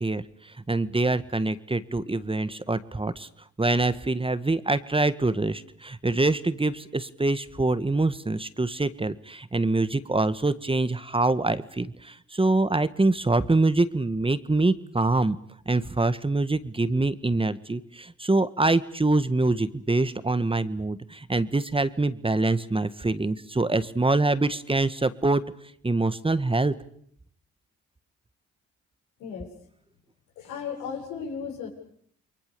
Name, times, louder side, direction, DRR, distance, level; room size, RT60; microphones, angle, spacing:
voice 1, 0.0-3.3 3.6-15.4 15.6-25.4 25.8-26.7, right 2 dB, 20° right, 13 dB, 1.7 m, -25 dB
voice 2, 29.2-29.5 30.4-31.7, left 6 dB, 85° left, 2 dB, 7.4 m, -35 dB
29.0 x 23.0 x 7.0 m, 0.66 s
supercardioid pair, 55°, 29 cm